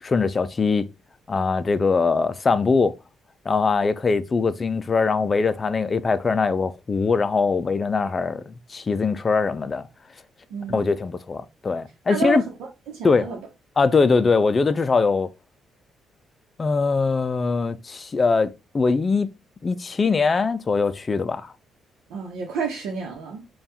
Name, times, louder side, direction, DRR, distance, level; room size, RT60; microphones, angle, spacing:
voice 1, 0.0-0.9 1.3-3.0 3.5-9.9 10.7-12.4 13.0-13.3 13.8-15.3 16.6-19.3 19.6-21.5, left 4 dB, 35° left, 0.4 m, -22 dB
voice 2, 10.5-10.9 12.1-12.4 12.9-13.4 22.1-23.4, right 5 dB, 90° right, 0.8 m, -30 dB
3.4 x 2.3 x 4.2 m
cardioid pair, 90°, 0 cm